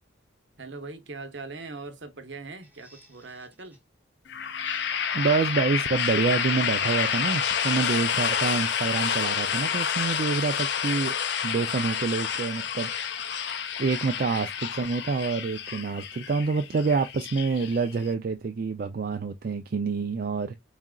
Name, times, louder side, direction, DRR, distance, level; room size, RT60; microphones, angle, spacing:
voice 1, 0.6-3.8, right 3 dB, 70° right, 0.8 m, -41 dB
sound 1, 2.6-3.8 4.6-5.6 6.8-7.2 8.1-9.4 10.0-10.2 12.0-12.2 13.1-13.6 14.3-14.6 15.0-15.5 16.9-17.9, right 1 dB, 10° right, 1.0 m, -53 dB
sound 2, 4.3-18.1, left 7 dB, 60° left, 0.5 m, -29 dB
voice 2, 5.1-12.9 13.4-20.6, right 4 dB, 50° right, 0.4 m, -27 dB
4.1 x 3.7 x 2.2 m
head